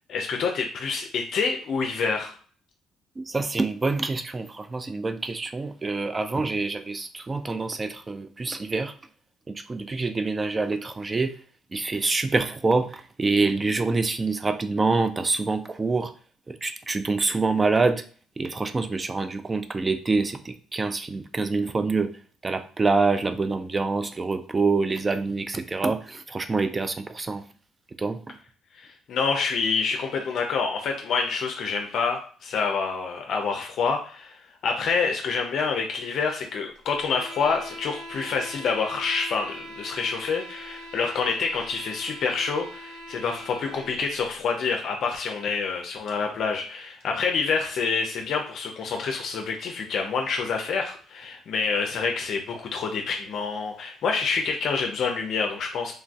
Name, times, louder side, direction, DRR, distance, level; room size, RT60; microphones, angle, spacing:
voice 1, 0.1-2.3 28.7-34.4 34.6-55.9, left 5 dB, 65° left, 3 dB, 0.4 m, -27 dB
voice 2, 3.2-8.9 9.5-11.3 11.7-16.1 16.5-18.0 18.4-22.2 22.4-27.4 28.0-28.4, right 3 dB, 25° right, 10 dB, 0.4 m, -26 dB
sound 1, 36.9-44.0, equal, 70° right, 1.5 m, -42 dB
3.2 x 2.4 x 2.3 m, 0.43 s
supercardioid pair, 80°, 0 cm